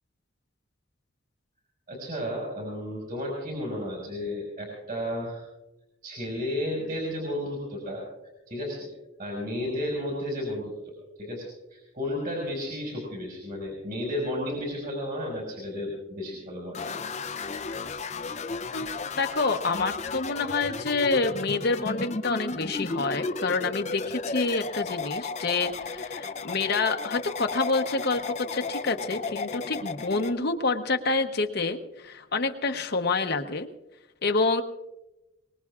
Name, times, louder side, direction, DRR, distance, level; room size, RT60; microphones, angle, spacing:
voice 1, 1.9-5.4 6.0-8.0 8.5-8.9 9.2-10.7 11.2-17.0, left 1 dB, 45° right, -2 dB, 5.1 m, -33 dB
sound 1, 16.7-30.3, left 4 dB, 35° left, 0.6 m, -34 dB
voice 2, 19.2-33.7 34.2-34.6, left 3 dB, 55° left, 5 dB, 0.9 m, -27 dB
24.0 x 20.0 x 2.4 m, 0.99 s
head